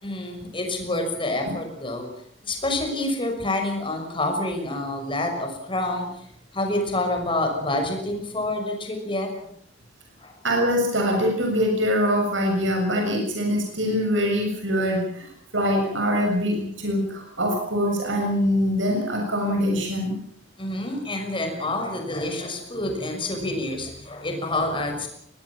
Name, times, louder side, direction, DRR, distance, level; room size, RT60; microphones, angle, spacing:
voice 1, 0.0-2.1 2.4-6.3 6.5-9.3 10.2-10.3 20.6-25.1, left 1 dB, 25° left, 4 dB, 6.1 m, -27 dB
voice 2, 10.4-20.2, equal, 80° right, 1 dB, 7.0 m, -23 dB
23.5 x 19.0 x 7.4 m, 0.68 s
head